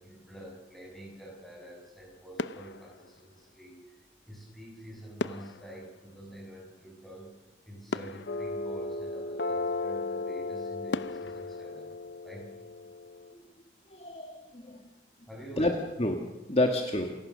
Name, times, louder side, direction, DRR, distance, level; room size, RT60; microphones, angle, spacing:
voice 1, 0.0-4.0 4.3-7.3 7.7-11.9 12.2-12.6 15.3-15.7, right 1 dB, ahead, -2 dB, 7.4 m, -47 dB
sound 1, 1.9-2.1 2.4-3.8 5.2-7.1 7.5-7.6 7.9-9.5 10.0-10.1 10.9-12.8 13.1-13.4, left 3 dB, 90° left, 0.7 m, -40 dB
sound 2, 8.3-13.3, left 3 dB, 75° left, 1.3 m, -35 dB
voice 2, 13.9-14.8 15.6-17.1, left 1 dB, 35° left, 3 dB, 1.8 m, -29 dB
28.5 x 17.5 x 6.5 m, 1.0 s
head